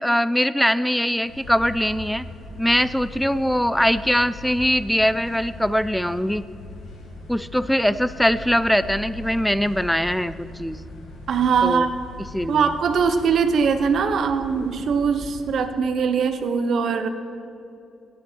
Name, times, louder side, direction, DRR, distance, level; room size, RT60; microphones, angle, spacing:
voice 1, 0.0-2.3 2.6-6.4 7.3-10.8 11.6-11.9 12.3-12.7, equal, ahead, 15 dB, 0.3 m, -22 dB
sound 1, 1.2-15.6, left 2 dB, 85° left, 2.4 m, -40 dB
voice 2, 11.3-11.9 12.5-17.1, right 6 dB, 60° right, 9 dB, 0.9 m, -21 dB
17.0 x 8.8 x 4.5 m, 2.8 s
cardioid pair, 120°, 0 cm